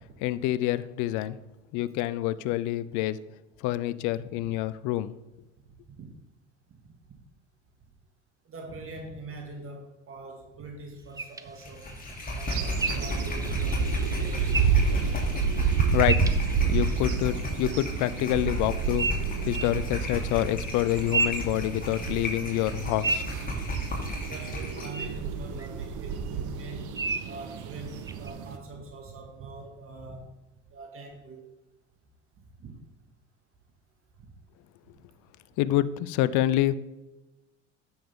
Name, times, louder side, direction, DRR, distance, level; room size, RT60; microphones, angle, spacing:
voice 1, 0.2-1.4 1.7-3.2 3.6-5.1 15.5-16.3 16.7-19.1 19.5-23.2 35.6-36.7, left 14 dB, 55° left, 17 dB, 0.6 m, -27 dB
voice 2, 5.6-6.1 6.7-6.8 7.1-7.2 8.4-12.0 12.3-14.7 24.3-30.3 30.7-31.5 32.6-32.8 34.2-34.3, right 3 dB, 35° right, 2 dB, 2.0 m, -43 dB
sound 1, 11.2-17.0 19.0-19.8 20.8-22.2 22.6-24.3 24.9-25.1 25.6-25.7 27.0-27.4 28.1-28.3, right 3 dB, 10° right, 0.6 m, -34 dB
sound 2, 11.6-25.0, equal, 25° left, 2.9 m, -33 dB
sound 3, 12.5-28.6, right 6 dB, 55° right, 1.2 m, -30 dB
10.0 x 7.1 x 3.7 m, 1.0 s
hypercardioid pair, 75°, 36 cm